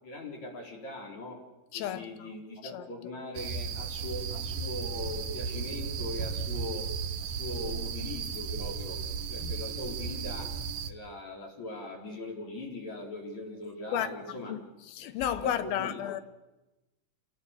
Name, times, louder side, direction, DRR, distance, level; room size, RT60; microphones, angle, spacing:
voice 1, 0.0-1.4 1.7-6.9 7.2-9.0 9.3-10.5 10.9-14.5 15.2-16.2, left 2 dB, 50° left, 5.4 m, -40 dB
voice 2, 1.7-2.3 2.6-3.1 9.4-9.5 13.9-16.2, left 10 dB, 80° left, 3.0 m, -34 dB
sound 1, 3.4-10.9, right 5 dB, 65° right, 2.5 m, -35 dB
28.5 x 18.5 x 8.4 m
omnidirectional pair, 4.3 m